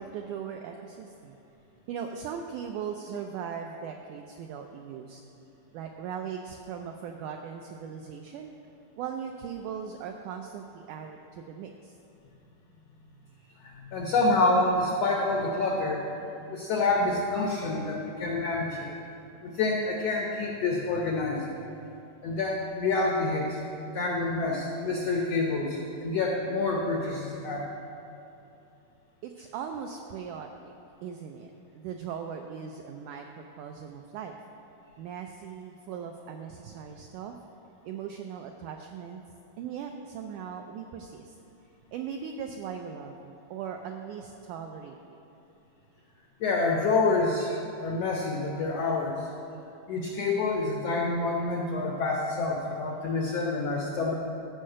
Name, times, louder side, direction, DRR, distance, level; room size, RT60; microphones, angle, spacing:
voice 1, 0.0-1.4 1.9-5.2 5.7-8.5 9.0-12.0 29.2-30.7 31.0-34.4 35.0-37.4 37.8-39.2 39.6-41.4 41.9-45.2, right 7 dB, 85° right, 4 dB, 1.7 m, -39 dB
voice 2, 13.6-16.2 16.5-18.9 19.4-21.5 22.2-23.6 23.9-27.7 46.4-49.3 49.9-54.1, left 3 dB, 85° left, 0 dB, 1.4 m, -27 dB
13.0 x 5.6 x 7.6 m, 2.8 s
omnidirectional pair, 4.1 m